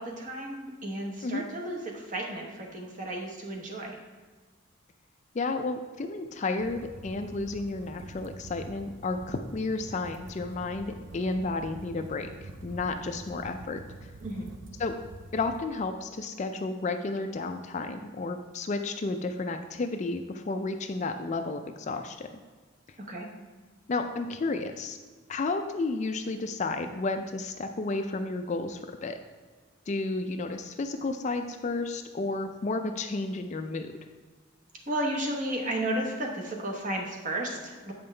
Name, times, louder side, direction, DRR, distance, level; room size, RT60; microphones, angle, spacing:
voice 1, 0.0-4.0 14.2-14.5 23.1-23.3 34.9-37.9, right 1 dB, 40° right, 0 dB, 1.0 m, -33 dB
voice 2, 5.3-13.8 14.8-15.0 15.3-22.3 23.9-25.0 25.3-29.2 29.9-33.9, left 3 dB, 35° left, 7 dB, 0.4 m, -32 dB
sound 1, 6.6-15.6, right 2 dB, 65° right, 0.5 m, -46 dB
7.9 x 5.4 x 3.3 m, 1.4 s
head